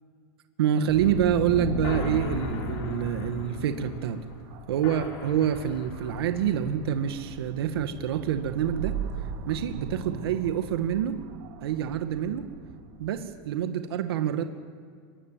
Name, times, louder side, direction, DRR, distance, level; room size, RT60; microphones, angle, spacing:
voice 1, 0.6-4.2 4.7-9.0 9.5-11.2 11.6-12.5 13.0-14.4, right 9 dB, 90° right, 7 dB, 1.9 m, -27 dB
sound 1, 0.9-10.4, left 4 dB, 65° left, 4.7 m, -38 dB
sound 2, 1.0-13.5, right 7 dB, 60° right, 3.1 m, -40 dB
24.0 x 20.0 x 9.2 m, 2.1 s
supercardioid pair, 150°, 13 cm